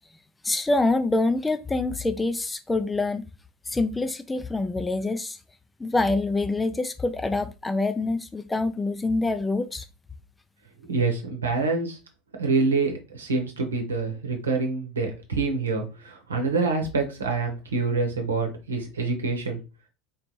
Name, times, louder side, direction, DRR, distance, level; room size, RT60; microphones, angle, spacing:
voice 1, 0.4-3.2 3.7-5.4 5.8-9.8, left 2 dB, 15° left, 0.4 m, -25 dB
voice 2, 10.9-12.0 12.4-19.6, right 3 dB, 85° right, 1.0 m, -26 dB
4.0 x 3.1 x 3.0 m
hypercardioid pair, 80°, 0 cm